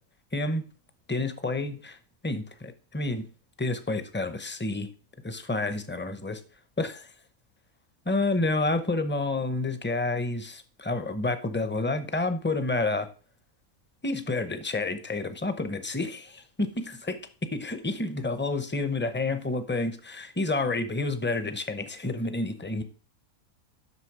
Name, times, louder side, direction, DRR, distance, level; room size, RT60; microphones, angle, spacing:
voice 1, 0.3-0.6 1.1-2.0 2.2-3.2 3.6-4.9 5.2-6.4 6.8-7.1 8.1-13.1 14.0-17.2 17.5-22.8, left 2 dB, 15° left, 0.4 m, -29 dB
8.3 x 6.1 x 4.8 m
omnidirectional pair, 1.6 m